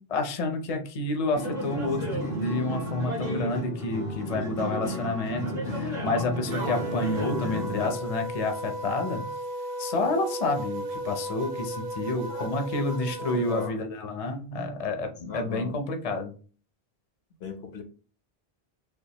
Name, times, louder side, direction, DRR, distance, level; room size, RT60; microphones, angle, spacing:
voice 1, 0.0-9.3 9.8-16.3, left 3 dB, 40° left, 5 dB, 0.7 m, -29 dB
sound 1, 1.3-7.9, equal, 60° right, 2.6 m, -32 dB
sound 2, 6.5-13.7, right 2 dB, 85° right, 0.9 m, -35 dB
voice 2, 12.1-13.8 15.3-15.8 17.4-17.8, left 6 dB, 80° left, 5 dB, 1.1 m, -39 dB
6.6 x 2.5 x 2.9 m, 0.39 s
omnidirectional pair, 1.0 m